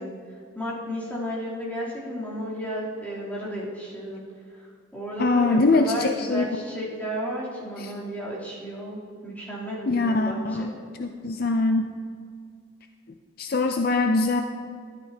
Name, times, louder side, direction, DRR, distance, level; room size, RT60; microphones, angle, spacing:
voice 1, 0.0-4.2 4.5-4.7 4.9-10.7, equal, 10° left, -8 dB, 3.2 m, -33 dB
voice 2, 5.2-6.5 7.8-7.9 9.9-10.7 11.0-11.9 13.4-14.4, left 3 dB, 50° left, 5 dB, 0.5 m, -23 dB
13.5 x 12.5 x 2.8 m, 2.1 s
head